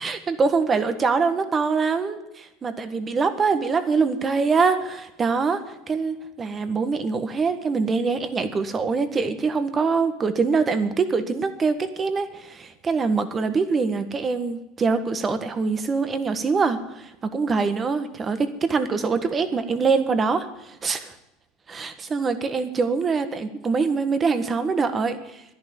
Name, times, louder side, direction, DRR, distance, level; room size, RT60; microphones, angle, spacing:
voice 1, 0.0-21.1 21.7-25.4, right 4 dB, 25° right, 10 dB, 1.6 m, -24 dB
11.0 x 10.5 x 9.2 m, 0.90 s
supercardioid pair, 110°, 0 cm